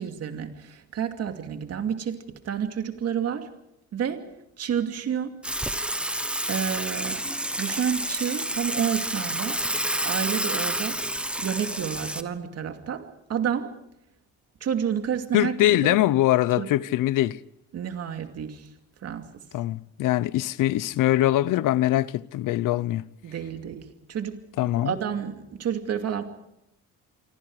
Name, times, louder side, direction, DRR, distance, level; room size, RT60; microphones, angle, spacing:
voice 1, 0.0-3.5 3.9-4.2 4.6-5.4 6.5-7.2 7.6-9.6 10.0-11.0 11.4-13.7 14.6-16.0 16.6-16.7 17.7-18.7 19.0-19.4 23.2-26.2, right 8 dB, 55° right, 2.6 m, -30 dB
Water / Water tap faucet / Sink (filling or washing), 5.4-12.2, right 1 dB, 5° right, 1.2 m, -29 dB
voice 2, 15.3-17.4 19.5-23.1 24.6-24.9, left 14 dB, 90° left, 0.8 m, -23 dB
27.5 x 24.0 x 4.9 m
cardioid pair, 140°, 31 cm